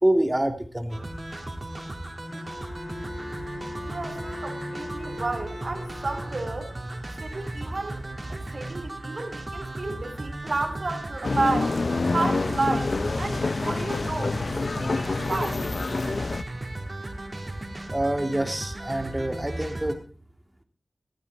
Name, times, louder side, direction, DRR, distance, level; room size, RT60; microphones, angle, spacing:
voice 1, 0.0-1.1 17.9-20.0, right 1 dB, 20° right, 5 dB, 2.8 m, -26 dB
sound 1, 0.9-19.9, right 1 dB, 40° right, 3.9 m, -36 dB
Bowed string instrument, 2.3-6.8, left 1 dB, 40° left, 6.2 m, -39 dB
voice 2, 3.9-6.7 7.2-8.0 8.3-11.8 12.1-15.6, right 3 dB, 60° right, 5 dB, 3.7 m, -31 dB
sound 2, 11.2-16.4, left 3 dB, 65° left, 0.6 m, -27 dB
15.0 x 15.0 x 4.3 m, 0.39 s
cardioid pair, 45°, 0 cm